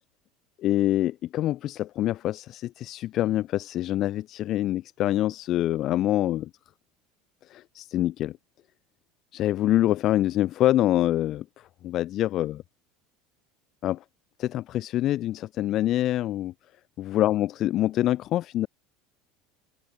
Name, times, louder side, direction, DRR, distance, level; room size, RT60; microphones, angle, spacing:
voice 1, 0.6-6.5 7.5-8.4 9.3-12.6 13.8-14.0 14.4-16.5 17.0-18.7, left 13 dB, 35° left, 3.8 m, -25 dB
cardioid pair, 175°, 0 cm